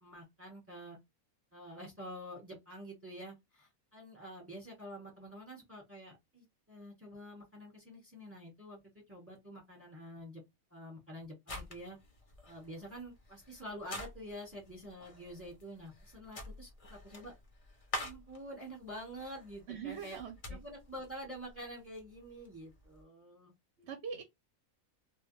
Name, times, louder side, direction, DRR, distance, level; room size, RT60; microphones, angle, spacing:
voice 1, 0.0-1.0 1.5-10.4 10.7-12.0 12.5-17.3 18.0-20.2 20.5-23.5, equal, 10° right, 1.0 m, -48 dB
sound 1, 11.5-23.0, left 2 dB, 45° left, 0.4 m, -48 dB
voice 2, 19.7-20.6 23.8-24.2, right 7 dB, 60° right, 0.7 m, -42 dB
2.3 x 2.2 x 3.0 m
omnidirectional pair, 1.5 m